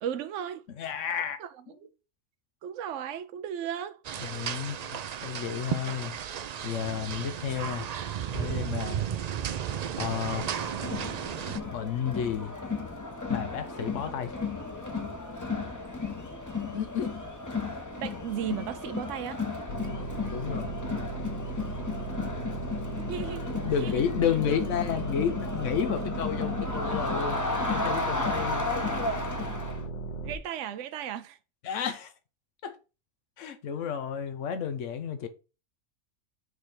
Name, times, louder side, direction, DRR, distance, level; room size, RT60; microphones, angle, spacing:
voice 1, 0.0-0.6 1.4-1.5 1.8-1.9 2.6-4.0 4.3-4.5 18.0-19.7 23.0-23.5 23.8-24.0 30.1-31.4, right 9 dB, 85° right, 0.9 m, -35 dB
voice 2, 0.7-1.4 4.2-6.4 6.6-7.9 8.3-9.0 9.7-10.4 11.6-12.5 13.3-14.3 16.6-17.1 19.8-20.1 20.3-20.7 23.6-27.4 27.7-28.7 31.6-32.1 32.6-32.8 33.4-35.3, left 8 dB, 85° left, 1.1 m, -32 dB
sound 1, 4.0-11.6, right 9 dB, 65° right, 0.4 m, -34 dB
Crowd, 10.4-29.8, left 3 dB, 15° left, 0.8 m, -34 dB
sound 2, 19.7-30.4, right 2 dB, 45° left, 1.0 m, -37 dB
6.5 x 3.4 x 5.8 m
omnidirectional pair, 1.2 m